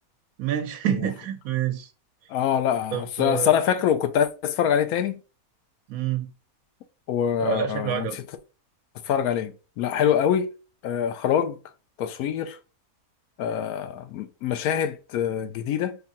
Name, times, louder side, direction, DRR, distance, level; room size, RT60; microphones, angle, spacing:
voice 1, 0.4-1.9 2.9-3.5 5.9-6.3 7.4-8.2, right 10 dB, 80° right, 1.0 m, -27 dB
voice 2, 2.3-5.2 7.1-8.1 9.0-10.5 10.8-11.6 12.0-12.6 13.4-16.0, left 9 dB, 85° left, 1.1 m, -24 dB
3.6 x 2.7 x 4.0 m
omnidirectional pair, 1.5 m